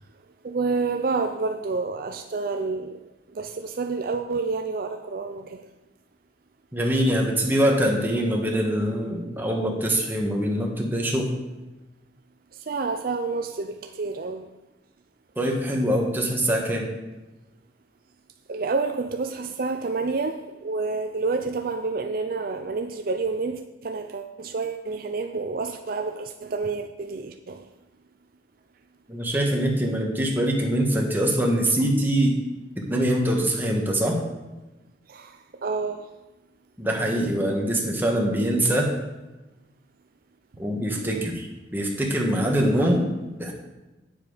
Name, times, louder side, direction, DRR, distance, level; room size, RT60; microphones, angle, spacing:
voice 1, 0.4-3.0 3.3-5.6 12.7-14.4 18.5-27.6 35.1-35.4 35.6-36.1 41.0-41.3, right 4 dB, 50° right, 6 dB, 0.5 m, -29 dB
voice 2, 6.7-11.3 15.3-16.8 29.1-32.4 32.8-34.2 36.8-38.9 40.6-41.5 41.7-43.5, right 1 dB, 10° right, -1 dB, 1.5 m, -23 dB
9.4 x 7.2 x 5.0 m, 1.1 s
head